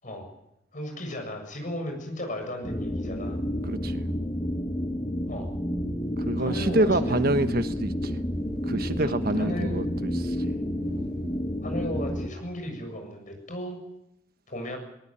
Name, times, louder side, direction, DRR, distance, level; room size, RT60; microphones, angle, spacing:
voice 1, 0.7-3.4 5.3-5.5 6.4-7.2 9.0-9.8 11.6-13.8 14.5-14.8, left 1 dB, 45° left, 7.3 m, -35 dB
sound 1, 2.6-12.3, equal, 20° left, 1.4 m, -30 dB
voice 2, 3.7-4.0 6.2-8.2 8.7-10.5, right 1 dB, 55° right, 1.3 m, -27 dB
21.5 x 19.0 x 9.0 m
head